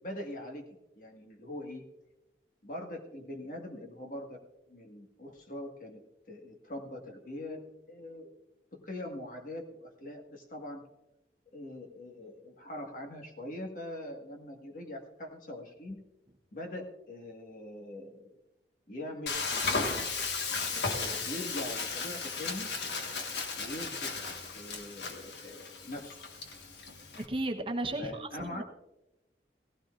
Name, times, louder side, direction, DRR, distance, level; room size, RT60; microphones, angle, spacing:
voice 1, 0.0-0.7 0.9-1.8 2.6-4.4 4.7-8.3 8.7-10.8 11.5-16.0 16.5-18.3 18.9-19.9 20.7-22.7 23.6-24.1 24.5-26.2 28.0-28.6, left 1 dB, 50° left, 2 dB, 1.7 m, -42 dB
Frying (food), 19.3-27.3, left 4 dB, 80° left, 1.5 m, -35 dB
voice 2, 27.1-28.6, right 1 dB, 30° right, 4 dB, 1.0 m, -34 dB
17.5 x 16.0 x 2.5 m, 0.98 s
head